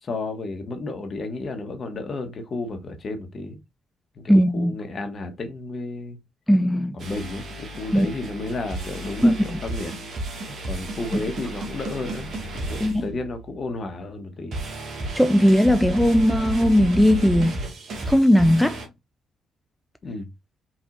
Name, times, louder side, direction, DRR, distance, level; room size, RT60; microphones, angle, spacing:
voice 1, 0.0-3.6 4.1-6.2 6.9-10.0 10.6-14.6 20.0-20.3, left 2 dB, 45° left, 1.2 m, -32 dB
voice 2, 4.3-4.8 6.5-7.0 7.9-8.1 9.2-9.6 11.1-11.2 12.8-13.1 15.1-17.6 18.1-18.8, equal, ahead, 0.4 m, -18 dB
sound 1, 7.0-13.7 14.5-18.9, right 2 dB, 55° right, 1.8 m, -33 dB
4.6 x 3.8 x 2.6 m
figure-of-eight pair, 45°, 0 cm